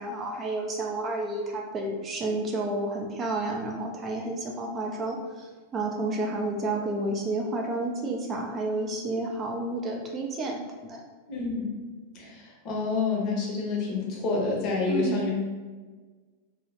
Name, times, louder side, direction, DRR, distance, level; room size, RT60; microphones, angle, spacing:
voice 1, 0.0-11.0 14.8-15.2, right 2 dB, 25° right, 0 dB, 0.3 m, -31 dB
voice 2, 11.3-11.7 12.1-15.3, left 4 dB, 40° left, -3 dB, 0.7 m, -28 dB
2.1 x 2.0 x 2.8 m, 1.4 s
figure-of-eight pair, 90°, 0 cm